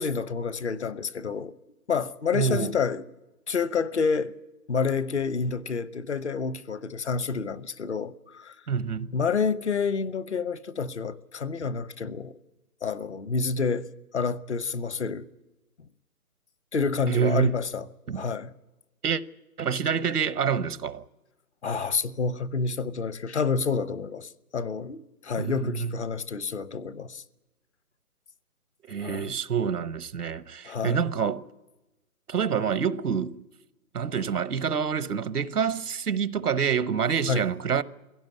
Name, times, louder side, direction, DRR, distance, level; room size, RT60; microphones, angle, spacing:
voice 1, 0.0-1.5 1.9-3.0 3.5-4.3 4.7-8.5 9.1-12.4 12.8-13.9 14.1-15.2 16.7-17.8 18.1-18.5 21.6-27.2 29.0-29.3 30.6-31.0 37.3-37.4, left 5 dB, 50° left, 0.9 m, -28 dB
voice 2, 2.3-2.8 8.7-9.1 17.1-17.6 18.1-18.3 19.0-19.2 19.6-21.0 25.4-25.9 28.9-31.5 32.3-33.4 33.9-37.8, right 7 dB, 90° right, 1.1 m, -27 dB
22.5 x 16.5 x 9.4 m
hypercardioid pair, 170°, 45 cm